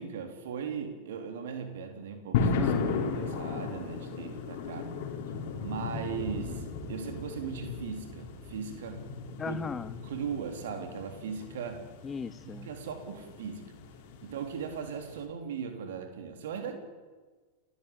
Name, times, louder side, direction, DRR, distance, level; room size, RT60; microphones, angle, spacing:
voice 1, 0.0-2.7 3.0-4.9 5.6-9.0 9.4-9.6 10.0-11.8 12.4-13.7 14.2-16.8, right 6 dB, 60° right, 6 dB, 3.7 m, -38 dB
sound 1, 2.3-15.3, left 4 dB, 50° left, 3.9 m, -36 dB
voice 2, 2.5-3.0 9.4-9.9 12.0-12.7, left 5 dB, 20° left, 15 dB, 0.7 m, -37 dB
29.5 x 16.0 x 8.8 m, 1.4 s
figure-of-eight pair, 90°, 0 cm